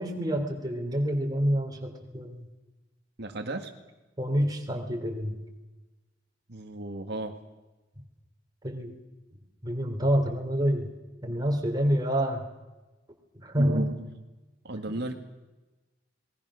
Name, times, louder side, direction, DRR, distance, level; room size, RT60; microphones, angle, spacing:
voice 1, 0.0-2.5 4.2-5.4 8.6-8.9 9.6-10.9 11.2-12.4 13.3-13.9 14.8-14.9, equal, 20° right, 2 dB, 3.4 m, -27 dB
voice 2, 3.2-3.7 6.5-7.4 13.6-14.1 14.6-15.1, right 2 dB, 60° right, 3 dB, 1.9 m, -34 dB
26.0 x 21.0 x 6.4 m, 1.1 s
head